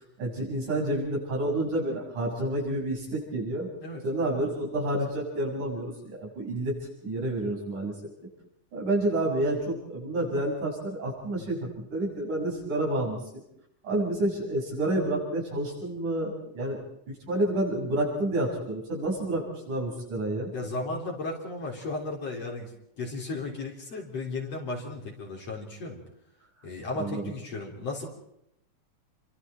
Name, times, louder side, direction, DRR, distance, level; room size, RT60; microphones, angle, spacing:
voice 1, 0.2-3.7 4.0-6.8 7.0-7.9 8.7-13.4 13.8-16.8 17.1-20.5 26.9-27.3, right 1 dB, 90° right, -3 dB, 8.5 m, -29 dB
voice 2, 20.5-22.7 23.0-26.0 26.6-28.1, left 2 dB, 55° left, -2 dB, 4.9 m, -35 dB
29.5 x 24.0 x 4.5 m, 0.78 s
omnidirectional pair, 3.4 m